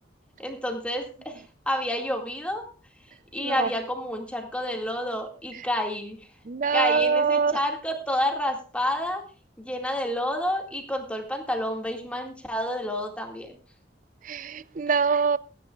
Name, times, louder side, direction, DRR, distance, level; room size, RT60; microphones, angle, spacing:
voice 1, 0.4-2.7 3.3-6.2 6.7-9.2 9.6-13.5, left 1 dB, 5° left, 2.0 m, -29 dB
voice 2, 3.4-3.7 5.5-5.7 6.5-7.6 14.2-15.4, right 5 dB, 45° right, 0.5 m, -24 dB
22.5 x 10.0 x 2.4 m
head